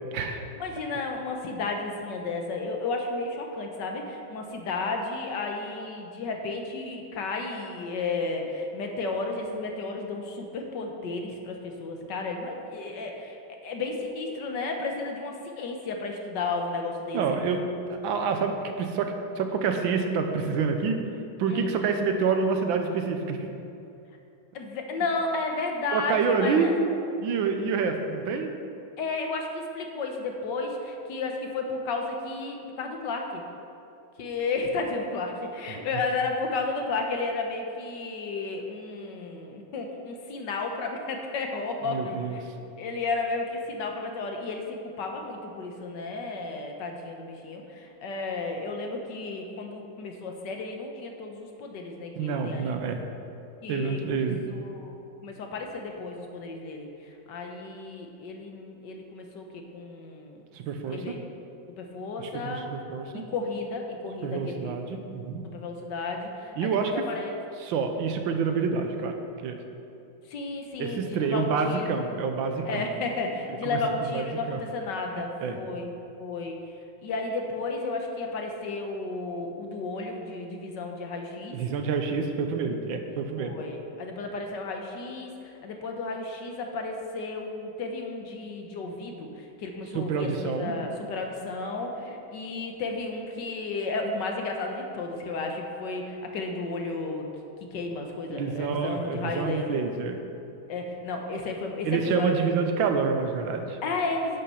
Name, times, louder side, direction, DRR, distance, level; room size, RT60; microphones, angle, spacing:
voice 1, 0.6-17.2 21.5-21.7 24.5-26.7 29.0-33.4 34.2-42.4 42.8-52.7 53.6-55.0 55.2-60.4 60.9-61.2 61.8-62.7 63.1-64.8 65.5-67.4 70.3-72.1 72.6-75.9 76.2-76.6 77.0-81.6 83.4-97.3 97.7-99.8 100.7-102.6 103.8-104.4, left 3 dB, 65° left, 2 dB, 1.5 m, -33 dB
voice 2, 17.1-17.6 17.9-21.0 21.4-23.6 25.9-26.7 27.2-28.5 35.7-35.8 41.8-42.4 52.2-53.0 53.7-54.4 60.5-61.2 62.2-63.2 64.2-65.4 66.6-66.9 67.6-69.2 69.4-69.6 70.8-72.8 73.6-73.8 74.1-74.6 75.4-75.6 81.5-83.6 89.9-90.7 98.3-100.2 101.8-103.8, right 5 dB, 80° right, 5 dB, 1.5 m, -27 dB
11.0 x 5.6 x 5.6 m, 2.7 s
omnidirectional pair, 2.1 m